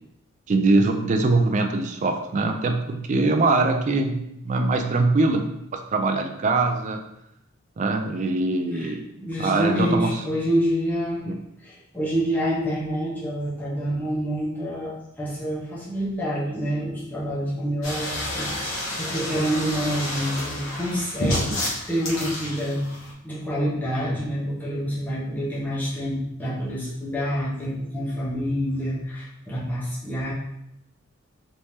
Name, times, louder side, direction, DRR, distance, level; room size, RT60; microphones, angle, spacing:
voice 1, 0.5-4.2 4.4-5.5 5.9-7.0 7.8-9.0 9.4-10.1 11.3-11.4, right 3 dB, 35° right, 5 dB, 0.3 m, -22 dB
voice 2, 9.2-11.3 11.6-21.6 21.9-22.9 23.2-30.3, equal, 10° left, -7 dB, 0.8 m, -27 dB
sound 1, 17.8-23.1, left 1 dB, 70° left, 1.1 m, -30 dB
3.4 x 3.1 x 2.7 m, 0.83 s
head